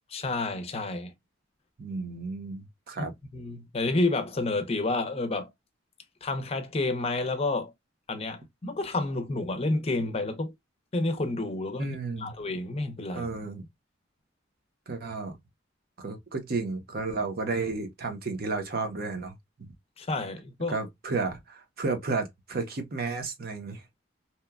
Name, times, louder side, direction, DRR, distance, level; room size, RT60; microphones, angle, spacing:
voice 1, 0.1-1.1 3.3-5.5 6.2-7.7 8.1-10.5 10.9-11.9 12.2-13.3 20.0-20.8, left 2 dB, 30° left, 0.6 m, -29 dB
voice 2, 1.8-3.1 11.8-12.3 13.1-13.6 14.9-15.4 16.0-19.7 20.7-23.8, right 3 dB, 50° right, 0.7 m, -32 dB
2.8 x 2.1 x 2.2 m
head